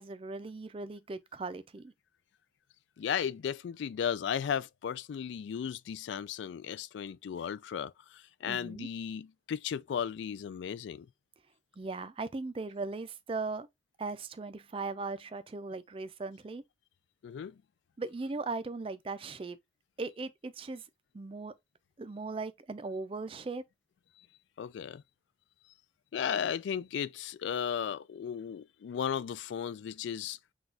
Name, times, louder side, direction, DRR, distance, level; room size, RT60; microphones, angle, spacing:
voice 1, 0.0-1.9 8.5-8.9 11.8-13.7 14.0-16.6 18.0-19.6 20.0-20.8 21.1-21.5 22.0-23.6, right 3 dB, 30° right, 0.4 m, -38 dB
voice 2, 3.0-7.9 8.4-11.1 17.2-17.5 24.6-25.0 26.1-30.4, left 8 dB, 80° left, 0.3 m, -35 dB
6.0 x 2.3 x 2.5 m
head